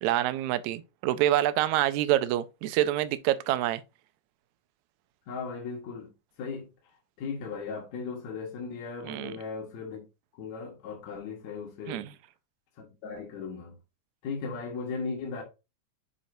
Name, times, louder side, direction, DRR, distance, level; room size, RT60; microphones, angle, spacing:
voice 1, 0.0-3.8 9.0-9.4 11.9-12.1, right 13 dB, 80° right, 2.0 m, -26 dB
voice 2, 5.3-6.1 6.4-10.0 10.4-12.1 12.8-13.8 14.2-15.4, left 5 dB, 70° left, 2.7 m, -37 dB
10.0 x 4.6 x 2.7 m
omnidirectional pair, 3.4 m